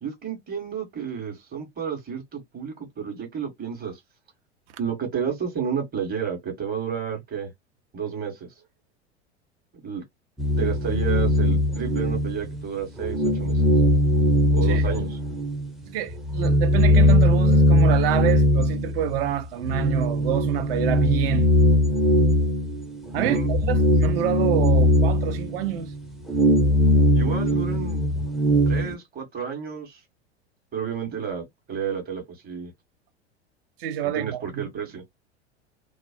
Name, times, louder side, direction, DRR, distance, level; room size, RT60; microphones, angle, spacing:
voice 1, 0.0-4.0 4.8-7.5 7.9-8.5 9.8-10.0 10.6-13.6 14.5-15.2 23.1-23.5 27.1-28.2 28.6-30.0 30.7-32.7 34.0-35.0, right 7 dB, 25° right, 1.2 m, -31 dB
sound 1, 10.4-12.6 13.0-15.7 16.1-28.9, left 1 dB, ahead, 0.4 m, -20 dB
voice 2, 15.9-21.5 23.1-25.9 33.8-34.7, right 11 dB, 55° right, 0.6 m, -27 dB
2.4 x 2.1 x 2.4 m
figure-of-eight pair, 85°, 35 cm